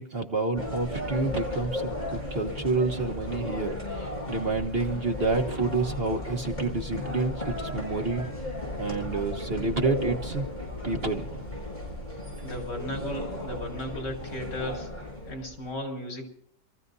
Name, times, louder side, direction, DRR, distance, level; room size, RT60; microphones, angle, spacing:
voice 1, 0.0-1.8 2.1-8.2 8.8-10.4 10.8-11.4, right 3 dB, 40° right, 3 dB, 1.3 m, -29 dB
sound 1, 0.5-15.7, left 1 dB, 25° left, 7.0 m, -35 dB
voice 2, 12.4-14.9 15.3-16.3, left 1 dB, 85° left, 3 dB, 5.3 m, -35 dB
27.5 x 15.0 x 2.7 m, 0.63 s
omnidirectional pair, 1.8 m